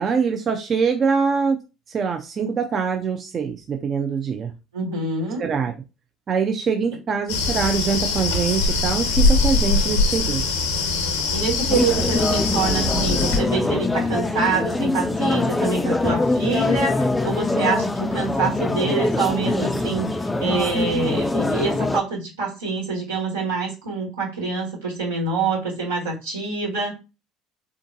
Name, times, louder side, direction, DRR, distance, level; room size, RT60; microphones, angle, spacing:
voice 1, 0.0-1.6 1.9-4.5 5.4-5.7 6.3-10.4 12.9-13.0, right 6 dB, 40° right, 4 dB, 0.5 m, -23 dB
voice 2, 4.7-5.4 11.3-27.0, right 4 dB, 85° right, -4 dB, 1.4 m, -26 dB
sound 1, 7.3-13.4, left 3 dB, 75° left, 0.6 m, -22 dB
sound 2, 11.7-22.0, left 2 dB, 15° left, 0.3 m, -23 dB
3.6 x 2.5 x 2.7 m, 0.27 s
hypercardioid pair, 60°, 0 cm